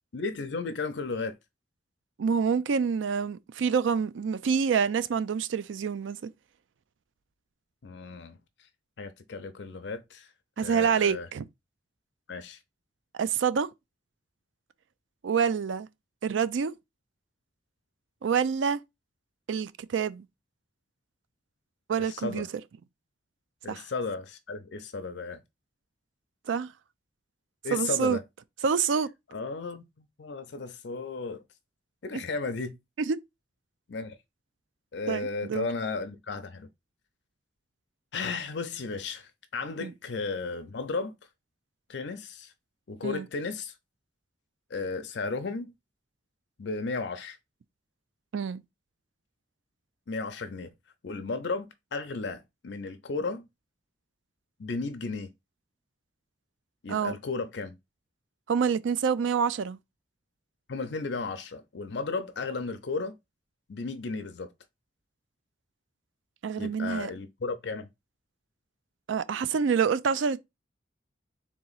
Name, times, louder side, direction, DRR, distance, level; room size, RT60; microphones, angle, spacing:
voice 1, 0.1-1.3 7.8-8.4 9.0-10.3 10.6-11.3 12.3-12.6 22.1-22.5 23.6-25.4 27.6-28.2 29.3-31.4 32.0-32.8 33.9-34.2 34.9-36.7 38.1-41.2 41.9-42.5 42.9-43.7 44.7-45.7 46.6-47.4 50.1-50.7 51.0-53.5 54.6-55.3 56.8-57.8 60.7-63.1 63.7-64.5 66.6-67.9, left 4 dB, 65° left, 0.5 m, -34 dB
voice 2, 2.2-6.3 10.6-11.5 13.1-13.7 15.2-15.9 16.2-16.7 18.2-18.8 19.5-20.3 21.9-22.5 23.7-23.8 26.5-26.7 27.7-28.2 28.6-29.1 32.1-32.2 33.0-33.2 35.1-35.7 39.8-39.9 43.0-43.3 48.3-48.6 56.9-57.1 58.5-59.8 66.4-67.1 69.1-70.4, right 6 dB, 85° right, 0.4 m, -27 dB
3.7 x 2.9 x 3.9 m
head